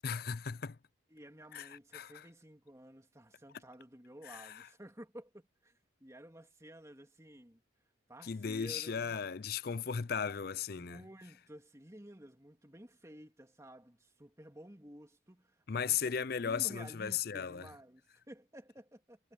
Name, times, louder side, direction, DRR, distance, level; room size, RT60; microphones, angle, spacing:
voice 1, 0.0-0.8 1.5-2.1 4.4-4.5 8.2-11.0 15.7-17.7, left 7 dB, 50° left, 0.5 m, -36 dB
voice 2, 1.1-7.6 8.1-9.2 10.7-16.1 16.4-19.2, right 1 dB, 15° right, 3.1 m, -53 dB
head